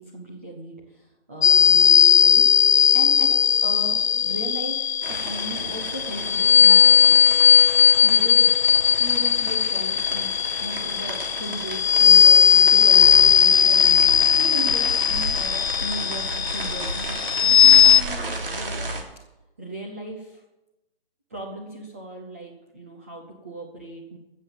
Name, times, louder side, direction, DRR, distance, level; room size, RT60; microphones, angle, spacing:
voice 1, 0.0-2.5 2.9-7.2 8.0-18.9 19.6-20.4 21.3-24.2, right 1 dB, 15° right, -2 dB, 0.7 m, -37 dB
sound 1, 1.4-18.0, left 9 dB, 80° left, 0.5 m, -17 dB
sound 2, 5.0-19.0, right 2 dB, 65° right, 3.2 m, -33 dB
15.0 x 7.3 x 7.4 m, 0.98 s
hypercardioid pair, 170°, 31 cm